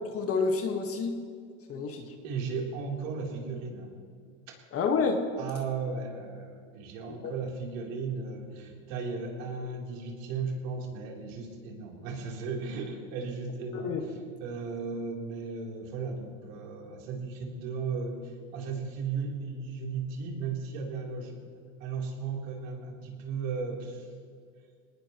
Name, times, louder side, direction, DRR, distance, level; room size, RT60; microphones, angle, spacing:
voice 1, 0.1-1.2 1.7-2.0 4.7-5.2 7.2-7.3 13.8-14.0, left 5 dB, 35° left, 4 dB, 1.8 m, -28 dB
voice 2, 2.2-3.9 4.5-4.6 5.4-21.4 21.8-24.1, right 4 dB, 65° right, -1 dB, 3.8 m, -36 dB
21.5 x 19.0 x 3.2 m, 2.1 s
supercardioid pair, 115°, 41 cm